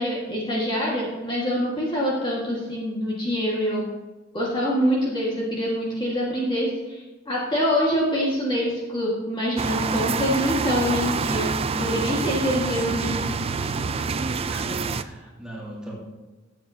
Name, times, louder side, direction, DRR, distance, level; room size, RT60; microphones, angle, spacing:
voice 1, 0.0-3.9 4.3-13.4, equal, 25° left, -5 dB, 1.7 m, -25 dB
sound 1, 9.6-15.0, right 5 dB, 30° right, 0.4 m, -27 dB
voice 2, 14.4-16.0, right 1 dB, 5° right, -5 dB, 2.4 m, -39 dB
13.0 x 8.3 x 2.8 m, 1.2 s
head